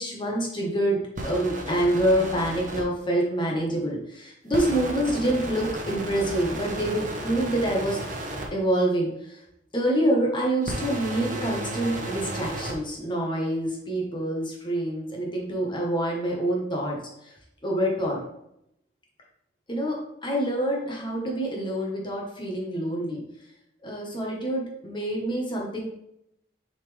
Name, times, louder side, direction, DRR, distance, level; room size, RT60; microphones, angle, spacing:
voice 1, 0.0-8.0 8.5-9.4 9.7-17.0 17.6-18.2 19.7-23.2 23.8-25.9, right 1 dB, 25° left, -2 dB, 1.5 m, -26 dB
sound 1, 1.2-2.8 4.5-8.5 10.6-12.7, right 1 dB, 45° right, 1.2 m, -33 dB
6.7 x 4.3 x 3.5 m, 0.80 s
head